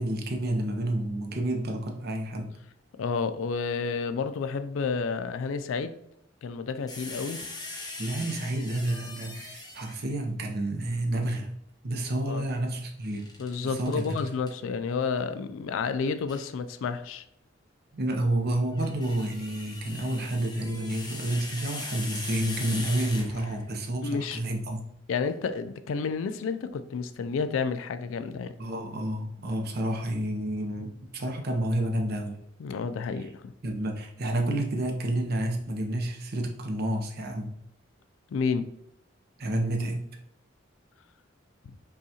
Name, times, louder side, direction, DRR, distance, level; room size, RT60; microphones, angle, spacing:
voice 1, 0.0-2.5 8.0-11.5 11.8-13.3 13.6-14.2 17.9-24.8 28.6-32.4 33.2-33.3 33.6-37.5 39.4-40.1, right 1 dB, 55° right, 0.7 m, -30 dB
voice 2, 3.0-5.9 6.4-7.5 12.3-12.4 13.4-17.2 24.0-24.4 25.1-28.5 32.6-33.5 38.3-38.7 41.7-41.8, left 5 dB, 75° left, 0.3 m, -30 dB
sound 1, 6.9-10.2 13.1-14.5 16.3-16.5 18.6-23.7, left 3 dB, 20° left, 0.7 m, -41 dB
5.4 x 2.4 x 2.8 m
head